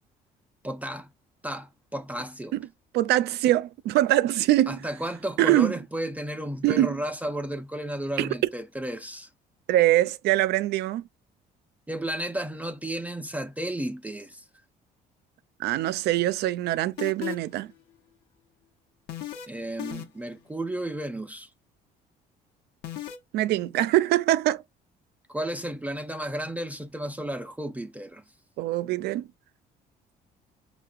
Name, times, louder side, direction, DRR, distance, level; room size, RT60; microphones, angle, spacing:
voice 1, 0.6-1.1 1.4-2.6 4.7-9.3 11.9-14.4 19.5-21.5 25.3-28.2, right 1 dB, 10° right, 0.3 m, -33 dB
voice 2, 2.9-4.8 5.4-5.7 6.6-7.0 8.2-8.3 9.7-11.1 15.6-17.7 23.3-24.6 28.6-29.3, right 15 dB, 75° right, 0.4 m, -23 dB
sound 1, 17.0-17.6 19.1-19.5 19.8-20.3 22.8-23.2, left 12 dB, 80° left, 0.8 m, -35 dB
5.5 x 2.1 x 2.4 m
cardioid pair, 110°, 17 cm